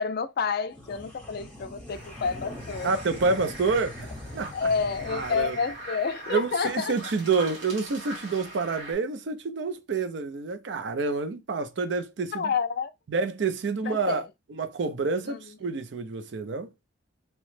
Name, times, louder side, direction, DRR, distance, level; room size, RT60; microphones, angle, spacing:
voice 1, 0.0-2.9 4.5-6.9 12.3-12.9 13.9-14.3 15.3-15.4, left 5 dB, 50° left, 0.4 m, -29 dB
sound 1, 0.7-7.4, left 1 dB, 5° left, 0.9 m, -43 dB
sound 2, 1.9-8.9, right 1 dB, 90° right, 1.4 m, -42 dB
voice 2, 2.8-4.5 5.1-5.6 6.3-12.5 13.1-14.2 14.5-16.7, right 4 dB, 65° right, 0.4 m, -28 dB
2.9 x 2.1 x 3.1 m
head